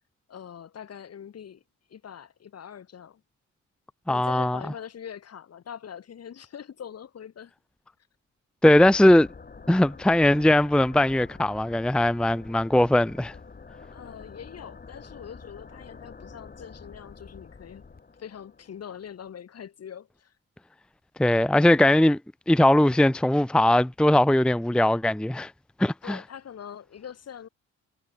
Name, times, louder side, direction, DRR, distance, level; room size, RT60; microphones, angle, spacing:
voice 1, 0.3-1.6 1.9-3.2 4.1-7.5 13.9-17.8 18.2-20.3 26.0-27.5, left 8 dB, 55° left, 4.4 m, -43 dB
voice 2, 4.1-4.6 8.6-9.3 9.7-13.4 21.2-22.2 22.5-25.5 25.8-26.2, left 1 dB, 5° left, 0.7 m, -20 dB
sound 1, 8.7-19.3, left 4 dB, 30° left, 6.9 m, -47 dB
cardioid pair, 90°, 30 cm